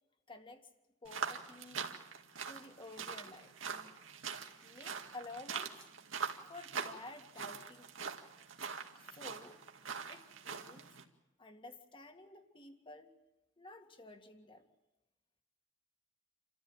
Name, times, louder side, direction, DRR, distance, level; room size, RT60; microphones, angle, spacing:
voice 1, 0.3-0.7 1.0-1.8 2.5-4.0 4.6-5.9 6.5-8.1 9.0-9.6 10.1-10.9 11.4-13.1 13.6-14.6, left 2 dB, 25° left, 6 dB, 2.0 m, -52 dB
sound 1, 1.0-11.0, right 6 dB, 80° right, 2.1 m, -43 dB
28.5 x 14.5 x 9.1 m, 1.0 s
head